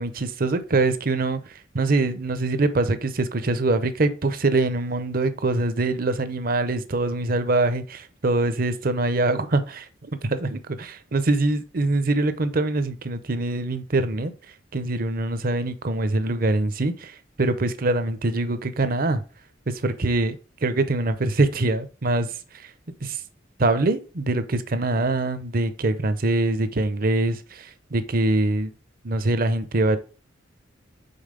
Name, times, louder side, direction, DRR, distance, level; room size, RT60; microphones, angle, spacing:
voice 1, 0.0-14.3 14.7-19.2 19.7-22.7 23.0-23.2 23.6-28.7 29.0-30.0, right 2 dB, 50° right, 0.7 m, -24 dB
5.5 x 4.0 x 5.1 m
head